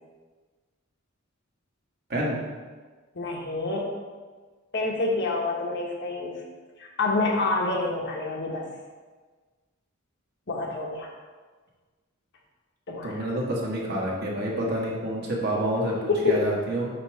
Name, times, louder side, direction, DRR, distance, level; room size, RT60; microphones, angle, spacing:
voice 1, 3.1-3.9 4.7-6.4 6.8-8.7 10.5-11.1 12.9-13.3 16.1-16.5, left 3 dB, 55° left, -1 dB, 1.1 m, -27 dB
voice 2, 13.0-16.9, right 1 dB, 50° right, -3 dB, 1.4 m, -28 dB
8.3 x 3.0 x 4.9 m, 1.4 s
head